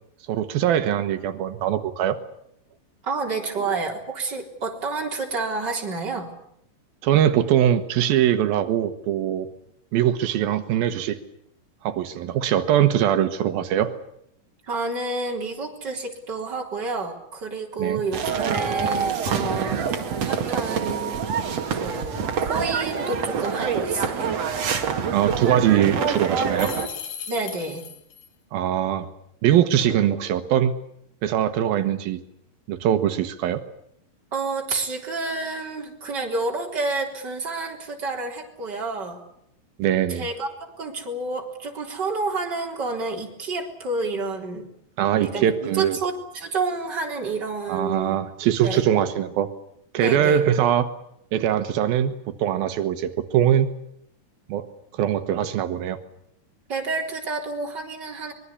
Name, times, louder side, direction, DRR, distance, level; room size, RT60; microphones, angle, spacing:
voice 1, 0.3-2.2 7.0-9.5 9.9-11.2 11.8-13.9 17.8-18.0 25.1-26.7 28.5-29.1 29.4-30.7 31.2-32.2 32.7-33.6 39.8-40.3 45.0-46.0 47.7-49.5 49.9-50.9 51.3-52.1 52.4-53.7 54.5-54.7 54.9-56.0, right 10 dB, 85° right, 9 dB, 3.1 m, -22 dB
voice 2, 3.0-6.3 14.7-19.8 20.2-21.2 21.7-24.3 27.3-27.8 34.3-39.2 40.1-44.7 45.2-48.2 48.6-48.8 50.0-50.4 56.7-58.3, right 3 dB, 30° right, 1 dB, 4.3 m, -29 dB
sound 1, 18.1-26.9, right 6 dB, 50° right, 3.0 m, -26 dB
sound 2, 26.6-28.3, left 8 dB, 75° left, 4.1 m, -36 dB
24.0 x 22.5 x 8.4 m, 0.73 s
omnidirectional pair, 4.1 m